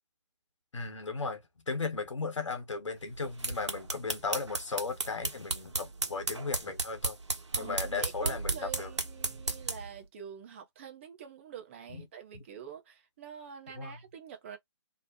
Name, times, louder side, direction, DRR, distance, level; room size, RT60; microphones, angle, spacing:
voice 1, 0.7-7.2 7.6-8.9 11.9-12.0 12.3-12.4 13.8-13.9, left 4 dB, 75° left, 1.1 m, -36 dB
sound 1, 3.1-9.9, right 3 dB, 70° right, 1.1 m, -35 dB
voice 2, 7.5-14.6, right 8 dB, 25° right, 0.6 m, -46 dB
2.8 x 2.1 x 2.7 m
figure-of-eight pair, 145°, 16 cm